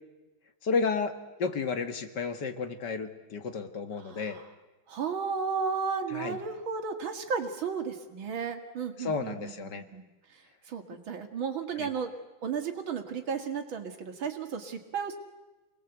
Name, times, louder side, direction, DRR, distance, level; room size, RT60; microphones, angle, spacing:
voice 1, 0.6-1.1 1.4-4.4 6.1-6.4 9.0-9.8 11.8-11.9, left 4 dB, 60° left, 7 dB, 2.2 m, -32 dB
voice 2, 4.0-4.5 4.9-10.0 10.7-12.1 12.4-15.2, right 6 dB, 80° right, 5 dB, 2.8 m, -34 dB
27.5 x 20.0 x 8.1 m, 1.2 s
omnidirectional pair, 2.1 m